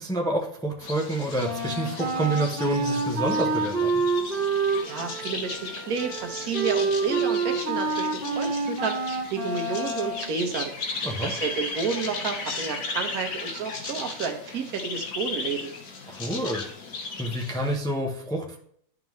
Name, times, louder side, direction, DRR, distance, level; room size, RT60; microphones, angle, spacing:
voice 1, 0.0-4.0 11.0-11.3 16.1-16.7 17.2-18.6, right 1 dB, 5° left, 0 dB, 0.6 m, -28 dB
sound 1, 0.8-17.8, left 3 dB, 65° left, 1.4 m, -36 dB
Wind instrument woodwind instrument, 1.4-10.3, right 4 dB, 40° right, 1.6 m, -27 dB
voice 2, 4.8-10.7 11.2-15.7, right 5 dB, 75° right, 4 dB, 1.3 m, -31 dB
11.0 x 3.7 x 3.1 m, 0.63 s
omnidirectional pair, 1.6 m